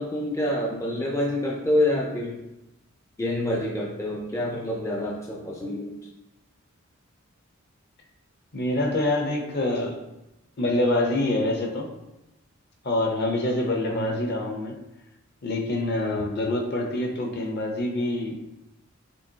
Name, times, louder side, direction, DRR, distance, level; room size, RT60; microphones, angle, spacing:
voice 1, 0.0-2.4 3.2-5.9 13.9-14.2, left 1 dB, 15° left, -2 dB, 0.4 m, -27 dB
voice 2, 8.5-10.0 10.6-11.9 12.8-14.8 15.4-18.5, left 1 dB, 50° left, 2 dB, 0.7 m, -26 dB
5.5 x 3.0 x 2.7 m, 0.94 s
head